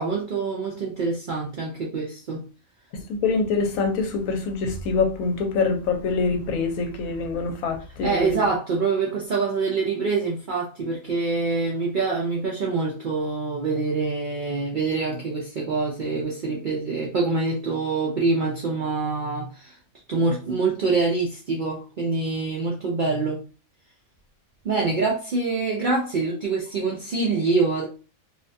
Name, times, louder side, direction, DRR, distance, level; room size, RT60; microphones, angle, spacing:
voice 1, 0.0-2.4 8.0-19.7 20.1-23.4 24.6-27.8, right 4 dB, 70° right, 0.4 m, -25 dB
voice 2, 2.9-8.4, left 4 dB, 85° left, 1.1 m, -25 dB
2.6 x 2.2 x 2.5 m
omnidirectional pair, 1.4 m